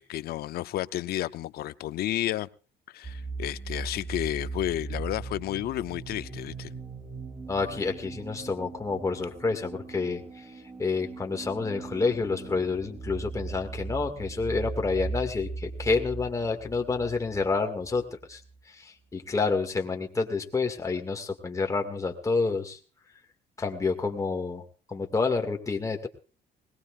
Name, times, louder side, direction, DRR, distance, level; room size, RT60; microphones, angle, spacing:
voice 1, 0.0-2.5 2.9-6.7, left 14 dB, 65° left, 0.7 m, -31 dB
sound 1, 3.0-18.6, right 4 dB, 20° right, 3.1 m, -39 dB
voice 2, 7.5-10.5 10.8-18.4 18.7-22.8 23.6-26.1, left 4 dB, 20° left, 2.1 m, -29 dB
21.0 x 19.5 x 2.5 m
cardioid pair, 110°, 17 cm